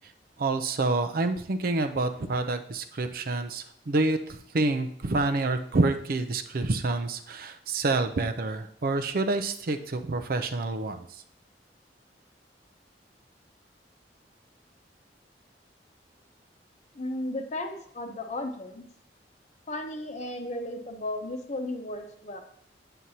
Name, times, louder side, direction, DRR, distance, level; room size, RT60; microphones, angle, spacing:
voice 1, 0.4-11.0, right 2 dB, 55° right, 7 dB, 0.6 m, -28 dB
voice 2, 16.9-18.9 19.7-22.4, left 1 dB, 40° left, 5 dB, 0.9 m, -34 dB
7.9 x 7.4 x 2.8 m, 0.68 s
head